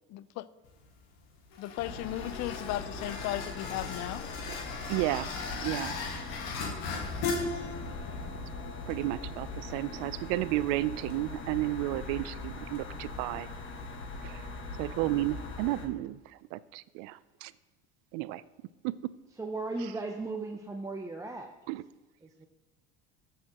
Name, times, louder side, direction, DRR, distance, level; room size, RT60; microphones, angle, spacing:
sound 1, 0.6-14.0, left 4 dB, 80° left, 1.5 m, -40 dB
voice 1, 1.6-4.3, left 15 dB, 55° left, 17 dB, 0.5 m, -35 dB
sound 2, 1.8-15.9, left 3 dB, 35° left, 1.5 m, -41 dB
voice 2, 4.9-5.4 5.6-6.0 8.9-13.5 14.2-14.5 14.8-17.5 18.1-18.4 18.8-19.1 19.8-19.9 21.7-21.8, right 16 dB, 75° right, 17 dB, 0.5 m, -33 dB
voice 3, 19.4-21.5 22.2-22.5, right 3 dB, 10° right, 2 dB, 0.6 m, -36 dB
13.5 x 6.7 x 2.9 m, 1.1 s
supercardioid pair, 105°, 33 cm